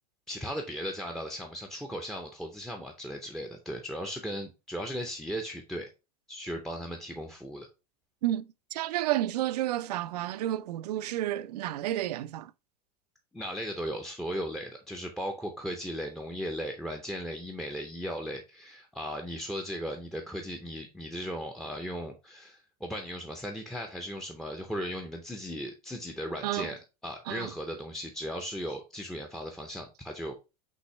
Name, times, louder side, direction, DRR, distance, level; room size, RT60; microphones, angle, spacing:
voice 1, 0.3-5.9 6.3-7.7 13.3-26.8 27.0-30.4, equal, ahead, 0.5 m, -37 dB
voice 2, 8.2-12.5 26.4-26.7 27.3-27.5, right 14 dB, 80° right, 0.4 m, -31 dB
5.5 x 3.1 x 3.0 m
supercardioid pair, 135°, 20 cm